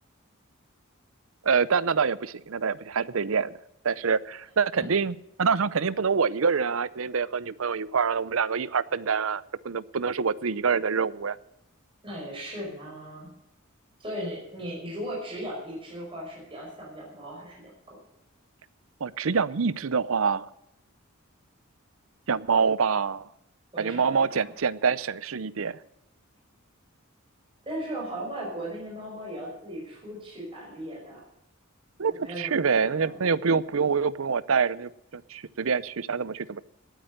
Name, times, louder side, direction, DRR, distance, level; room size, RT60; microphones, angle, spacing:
voice 1, 1.4-3.5 3.8-11.4 19.0-20.5 22.3-23.3 23.8-25.8 32.0-36.6, right 5 dB, 70° right, 19 dB, 0.6 m, -26 dB
voice 2, 12.0-13.3 14.0-18.0 23.7-24.5 27.6-31.2 32.1-33.2, equal, 25° right, -4 dB, 5.5 m, -37 dB
18.5 x 8.9 x 6.6 m, 0.82 s
head